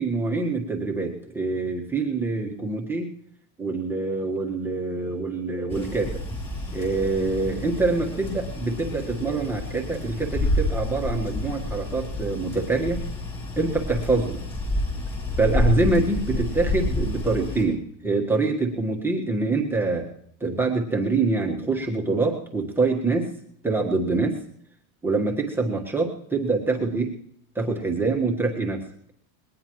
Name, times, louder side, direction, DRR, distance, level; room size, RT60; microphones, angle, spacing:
voice 1, 0.0-3.1 3.6-6.2 6.7-13.0 13.6-14.4 15.4-20.1 20.4-23.3 23.6-24.4 25.0-27.1 27.5-28.8, right 3 dB, 5° right, -1 dB, 1.5 m, -25 dB
sound 1, 5.7-17.6, left 1 dB, 15° left, 4.1 m, -29 dB
21.0 x 19.0 x 3.1 m, 0.66 s
supercardioid pair, 180°, 45 cm